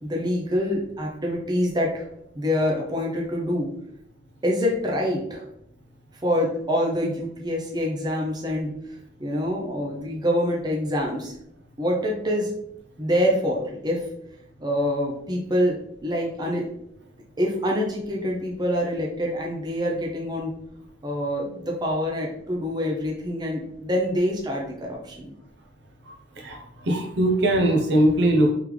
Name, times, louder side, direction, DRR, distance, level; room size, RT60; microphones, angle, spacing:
voice 1, 0.0-2.1 2.3-3.7 4.4-5.5 6.2-11.3 11.8-12.5 13.0-14.1 14.6-16.7 17.4-20.5 21.0-25.3, equal, 25° right, -1 dB, 0.6 m, -26 dB
voice 2, 26.4-28.5, right 1 dB, 65° right, 2 dB, 0.8 m, -21 dB
3.5 x 3.4 x 3.2 m, 0.74 s
head